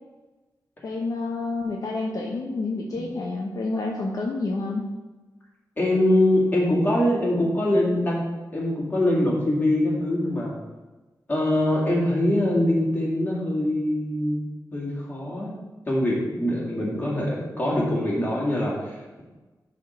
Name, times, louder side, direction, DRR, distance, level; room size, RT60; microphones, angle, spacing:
voice 1, 0.8-4.8, left 3 dB, 55° left, -1 dB, 0.8 m, -29 dB
voice 2, 5.8-8.2 8.5-10.6 11.3-14.4 14.7-15.5 15.9-19.2, left 1 dB, 25° left, -5 dB, 2.1 m, -23 dB
10.0 x 3.6 x 4.5 m, 1.2 s
wide cardioid pair, 160°, 7 cm